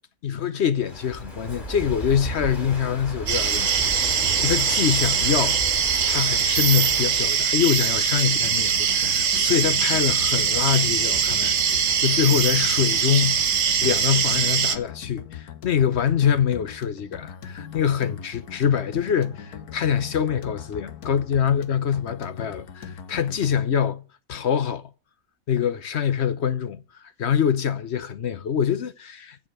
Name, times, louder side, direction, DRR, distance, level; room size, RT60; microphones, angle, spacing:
voice 1, 0.2-5.6 6.1-13.5 13.8-24.0 24.3-24.9 25.5-29.5, left 8 dB, 55° left, 0.9 m, -24 dB
Walk footsteps / Wind / Waves surf, 0.8-7.4, equal, 30° left, 4.6 m, -34 dB
sound 1, 3.3-14.8, right 7 dB, 55° right, 1.2 m, -22 dB
sound 2, 8.2-23.7, left 7 dB, 85° left, 1.6 m, -40 dB
14.5 x 5.1 x 8.8 m
omnidirectional pair, 1.5 m